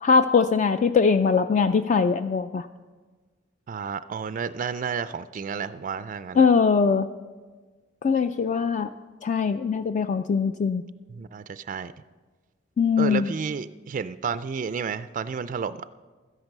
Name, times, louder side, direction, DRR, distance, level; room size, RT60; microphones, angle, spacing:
voice 1, 0.0-2.7 6.4-7.1 8.0-8.9 9.2-10.8 12.8-13.3, left 5 dB, 40° left, 9 dB, 0.3 m, -21 dB
voice 2, 3.7-6.5 11.1-11.9 13.0-15.9, right 6 dB, 40° right, 13 dB, 0.3 m, -31 dB
13.0 x 10.5 x 6.6 m, 1.4 s
head